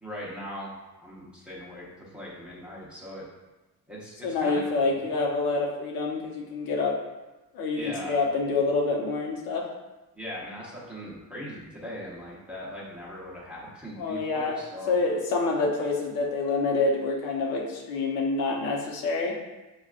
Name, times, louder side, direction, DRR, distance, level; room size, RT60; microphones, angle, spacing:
voice 1, 0.0-3.3 3.9-5.2 7.7-8.3 10.1-14.9, equal, 5° right, -7 dB, 0.8 m, -40 dB
voice 2, 4.2-6.9 7.5-9.6 14.0-14.6 14.9-19.3, left 3 dB, 75° left, -1 dB, 0.8 m, -27 dB
5.9 x 2.3 x 2.4 m, 1.1 s
cardioid pair, 145°, 36 cm